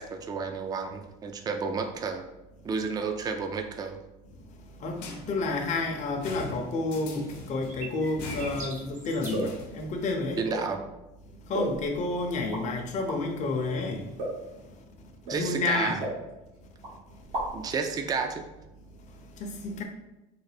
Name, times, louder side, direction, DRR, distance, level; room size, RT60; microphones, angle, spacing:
voice 1, 0.0-2.2 2.6-4.0 10.4-10.8 15.3-16.0 17.5-18.4, right 5 dB, 20° right, 0.4 m, -31 dB
voice 2, 4.8-10.4 11.5-14.1 15.3-16.0 19.4-19.8, left 3 dB, 40° left, 0.6 m, -30 dB
sound 1, 5.0-10.0, left 2 dB, 80° left, 0.8 m, -43 dB
sound 2, 7.7-9.5, right 3 dB, 45° right, 0.7 m, -42 dB
sound 3, 9.3-9.6 10.5-10.7 11.5-12.1 12.5-12.6 13.1-13.2 14.2-14.5 15.3-15.4 16.0-16.6 16.8-16.9 17.2-17.7, right 1 dB, 85° right, 1.3 m, -33 dB
3.8 x 2.1 x 3.3 m
supercardioid pair, 90°, 19 cm